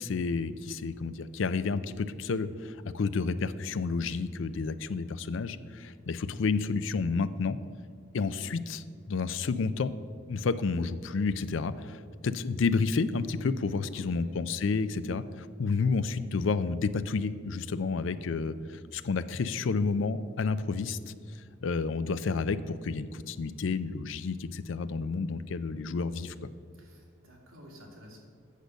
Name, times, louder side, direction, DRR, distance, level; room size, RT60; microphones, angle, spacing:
voice 1, 0.0-7.6 8.1-9.9 10.3-21.0 21.6-26.3, left 4 dB, 70° left, 14 dB, 0.4 m, -30 dB
voice 2, 13.9-14.4 26.7-28.2, equal, 85° right, -1 dB, 2.3 m, -51 dB
8.2 x 6.7 x 6.4 m, 2.1 s
head